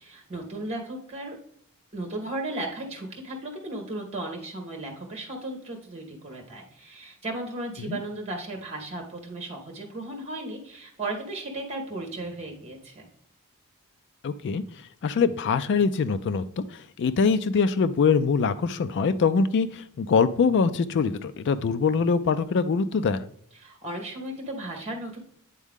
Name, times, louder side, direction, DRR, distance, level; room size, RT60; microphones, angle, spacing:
voice 1, 0.0-1.4 1.9-13.1 23.6-25.2, right 2 dB, 30° right, 1 dB, 1.8 m, -35 dB
voice 2, 14.2-14.6 15.0-23.3, left 5 dB, 55° left, 11 dB, 0.3 m, -23 dB
9.2 x 3.6 x 3.6 m, 0.65 s
head